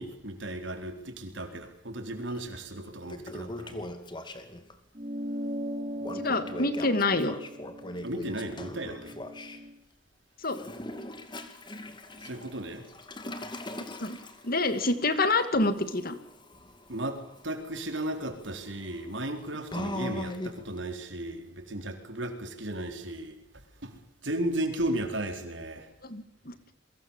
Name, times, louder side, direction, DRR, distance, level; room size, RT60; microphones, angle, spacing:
voice 1, 0.0-3.9 8.0-9.1 12.2-12.9 16.9-23.4 23.8-25.9, right 1 dB, 75° right, 5 dB, 4.4 m, -35 dB
Toilet flush, 2.3-2.4 2.8-4.8 6.0-9.6 10.4-20.8, left 1 dB, 25° left, 2.4 m, -41 dB
sound 1, 4.9-9.7, equal, 30° right, 2.4 m, -38 dB
voice 2, 6.1-7.3 10.4-10.6 14.0-14.2 14.4-16.2 26.0-26.5, left 2 dB, 50° left, 10 dB, 2.4 m, -27 dB
28.5 x 23.5 x 7.4 m, 0.72 s
head